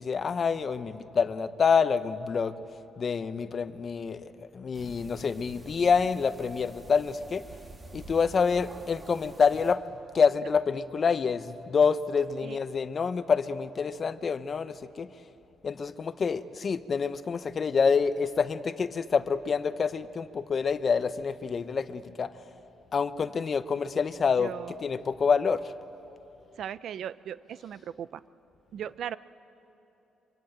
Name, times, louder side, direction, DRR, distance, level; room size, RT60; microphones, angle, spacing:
voice 1, 0.0-2.6 3.0-7.4 7.9-9.8 10.1-15.1 15.6-22.3 22.9-25.7, left 5 dB, 45° left, 12 dB, 0.9 m, -27 dB
sound 1, 4.7-9.7, right 2 dB, 30° right, 2.7 m, -48 dB
voice 2, 24.4-24.7 26.6-28.2 28.7-29.2, right 9 dB, 70° right, 16 dB, 0.6 m, -37 dB
24.5 x 23.5 x 8.8 m, 3.0 s
cardioid pair, 90°, 0 cm